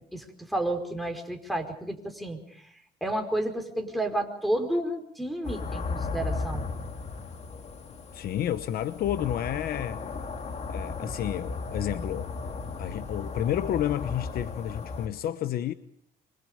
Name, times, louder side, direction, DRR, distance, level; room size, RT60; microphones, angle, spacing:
voice 1, 0.1-2.7 3.0-6.7, right 1 dB, ahead, 4.8 m, -31 dB
sound 1, 5.4-15.1, left 4 dB, 40° left, 2.4 m, -35 dB
voice 2, 8.1-10.0 10.7-12.3 12.8-15.7, left 11 dB, 65° left, 1.0 m, -30 dB
26.5 x 25.0 x 5.2 m
cardioid pair, 110°, 17 cm